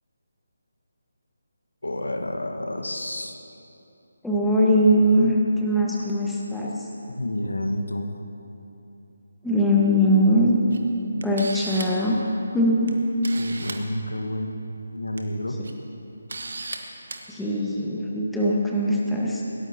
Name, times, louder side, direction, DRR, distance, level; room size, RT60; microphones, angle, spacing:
voice 1, 1.8-3.4 7.1-8.1 13.3-14.6 14.9-15.6, left 1 dB, 75° left, 3 dB, 1.5 m, -30 dB
voice 2, 4.2-6.9 9.4-10.6 11.2-12.2 12.5-12.9 17.3-19.4, equal, ahead, -5 dB, 1.5 m, -21 dB
Camera, 10.7-10.8 11.2-12.0 12.9-13.0 13.2-13.8 15.0-15.2 15.6-15.7 16.3-16.8 17.1-17.2, right 3 dB, 60° right, 1.5 m, -35 dB
21.5 x 17.5 x 2.9 m, 2.9 s
figure-of-eight pair, 150°, 0 cm